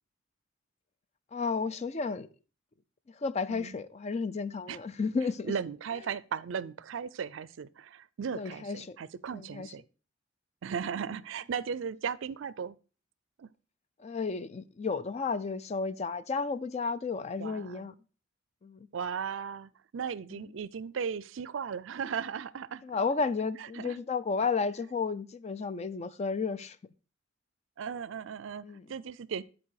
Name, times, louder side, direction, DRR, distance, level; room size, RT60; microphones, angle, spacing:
voice 1, 1.3-2.3 3.1-5.5 8.3-9.0 9.3-9.7 14.0-17.9 18.6-18.9 20.3-20.4 22.8-26.8 28.6-28.9, left 4 dB, 35° left, 0.4 m, -32 dB
voice 2, 5.4-9.8 10.6-12.8 13.4-13.5 17.4-17.9 18.9-22.8 23.8-24.0 27.8-29.4, right 7 dB, 70° right, 0.4 m, -36 dB
10.0 x 4.3 x 4.6 m
head